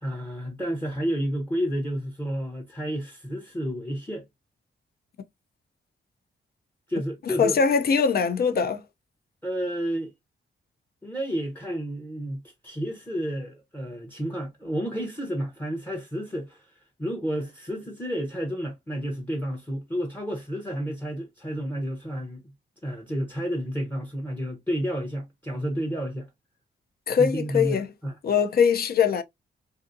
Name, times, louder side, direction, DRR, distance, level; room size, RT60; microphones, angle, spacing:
voice 1, 0.0-4.2 6.9-7.6 9.4-10.1 11.0-16.7 17.0-22.4 22.8-26.3 27.2-28.1, equal, 10° left, 0.7 m, -31 dB
voice 2, 7.3-8.8 27.1-27.9 28.2-29.2, left 6 dB, 50° left, 0.5 m, -22 dB
2.6 x 2.6 x 2.5 m
cardioid pair, 95°, 20 cm